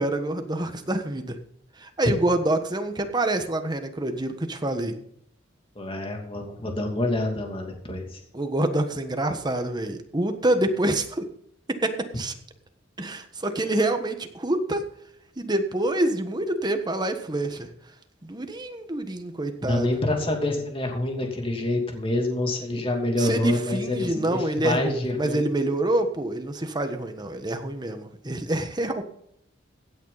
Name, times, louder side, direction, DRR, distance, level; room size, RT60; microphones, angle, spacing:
voice 1, 0.0-1.4 1.8-4.9 8.3-11.2 11.8-12.3 13.0-14.8 15.4-17.7 18.2-19.9 23.2-29.0, right 1 dB, 20° right, 7 dB, 1.4 m, -26 dB
voice 2, 5.7-8.2 19.6-25.4, left 1 dB, 30° left, 2 dB, 2.8 m, -27 dB
16.0 x 9.4 x 4.1 m, 0.72 s
head